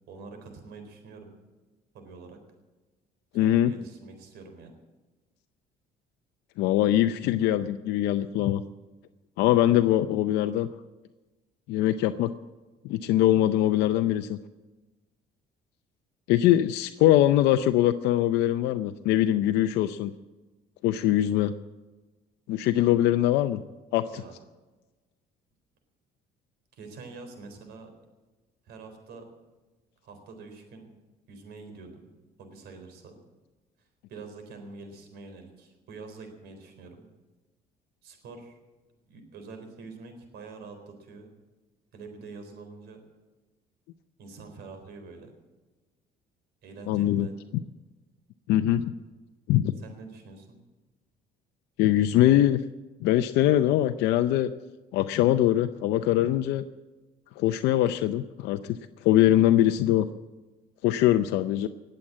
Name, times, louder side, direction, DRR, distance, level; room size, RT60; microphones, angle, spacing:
voice 1, 0.1-1.4 1.9-2.4 3.3-4.8 24.1-24.3 26.7-27.9 28.7-29.3 30.0-30.9 31.3-32.1 32.4-33.2 33.8-37.1 38.0-38.6 39.1-41.3 41.9-43.0 44.2-45.3 46.6-47.3 49.8-50.6, right 4 dB, 75° right, 6 dB, 4.0 m, -45 dB
voice 2, 3.3-3.7 6.6-8.6 9.4-10.7 11.7-12.3 12.8-14.4 16.3-20.1 20.8-21.5 22.5-23.6 23.9-24.0 46.9-47.3 48.5-48.9 49.5-49.7 51.8-52.6 53.0-54.5 54.9-56.6 57.4-60.1 60.8-61.7, left 13 dB, 90° left, 9 dB, 0.6 m, -22 dB
20.0 x 7.8 x 8.5 m, 1.2 s
cardioid pair, 110°, 17 cm